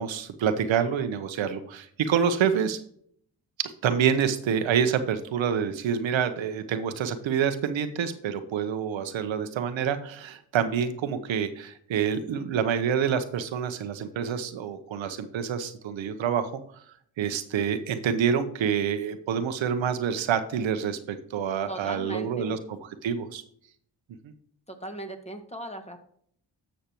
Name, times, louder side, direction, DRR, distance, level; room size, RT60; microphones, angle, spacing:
voice 1, 0.0-2.8 3.6-16.5 17.2-23.4 24.2-24.3, right 7 dB, 80° right, 10 dB, 0.9 m, -27 dB
voice 2, 21.7-22.6 24.7-26.0, right 1 dB, 15° left, 5 dB, 1.7 m, -38 dB
11.5 x 6.4 x 3.0 m, 0.63 s
cardioid pair, 50°, 46 cm